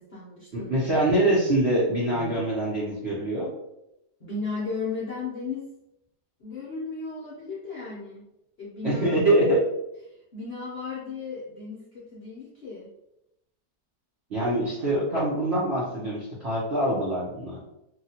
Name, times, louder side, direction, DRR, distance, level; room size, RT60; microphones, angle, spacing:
voice 1, 0.0-0.7 2.1-2.5 4.2-5.7 6.4-8.3 8.6-9.2 10.1-12.9, left 4 dB, 55° left, -7 dB, 0.6 m, -35 dB
voice 2, 0.5-3.5 8.8-9.6 14.3-17.6, right 1 dB, 55° right, -7 dB, 0.7 m, -24 dB
3.1 x 2.3 x 2.7 m, 0.86 s
omnidirectional pair, 1.9 m